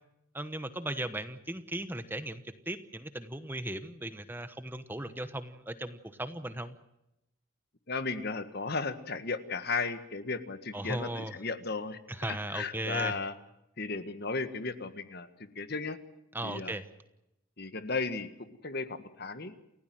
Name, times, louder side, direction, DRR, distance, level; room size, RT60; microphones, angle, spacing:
voice 1, 0.3-6.7 10.7-11.3 12.1-13.1 16.3-16.8, right 1 dB, 10° right, 11 dB, 1.1 m, -37 dB
voice 2, 7.9-13.3 13.8-16.0 16.4-16.7 17.6-18.3 18.6-19.5, left 4 dB, 50° left, 11 dB, 1.7 m, -35 dB
29.5 x 16.5 x 7.7 m, 0.86 s
head